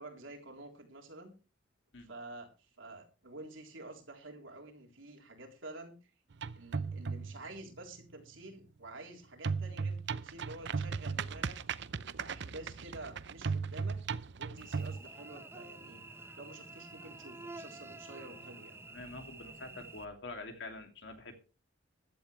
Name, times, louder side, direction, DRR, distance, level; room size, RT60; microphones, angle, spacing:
voice 1, 0.0-1.3 2.0-6.0 6.5-11.6 12.2-14.0 14.4-16.0 16.4-18.8, right 2 dB, 80° right, 2 dB, 3.7 m, -49 dB
sound 1, 6.3-7.5 9.4-15.0, right 5 dB, 60° right, 0.6 m, -36 dB
Cricket / Buzz, 14.6-20.0, right 2 dB, 10° right, 0.7 m, -49 dB
voice 2, 18.9-21.3, left 2 dB, 65° left, 5 dB, 2.8 m, -45 dB
15.5 x 11.5 x 3.3 m, 0.33 s
head